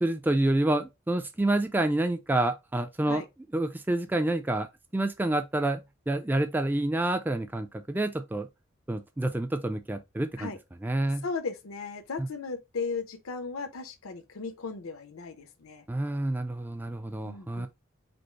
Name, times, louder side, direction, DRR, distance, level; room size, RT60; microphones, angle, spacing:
voice 1, 0.0-3.2 3.5-4.7 4.9-8.5 8.9-10.5 10.8-11.2 12.2-12.3 15.9-17.7, right 1 dB, 10° right, 0.3 m, -28 dB
voice 2, 11.2-15.8 17.2-17.7, left 4 dB, 80° left, 0.7 m, -36 dB
5.2 x 2.0 x 4.3 m
head